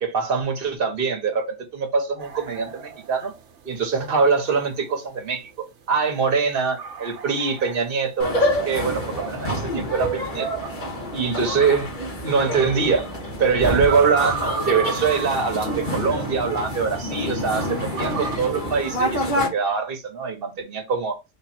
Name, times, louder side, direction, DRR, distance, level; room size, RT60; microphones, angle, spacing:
voice 1, 0.0-3.3 3.6-10.7 11.1-11.9 12.2-13.1 13.4-21.2, right 5 dB, 50° right, 1.2 m, -24 dB
sound 1, 2.2-17.1 17.5-18.4, right 7 dB, 80° right, 1.1 m, -35 dB
sound 2, 8.2-19.5, equal, 45° left, 1.6 m, -27 dB
3.5 x 3.0 x 4.3 m
omnidirectional pair, 1.2 m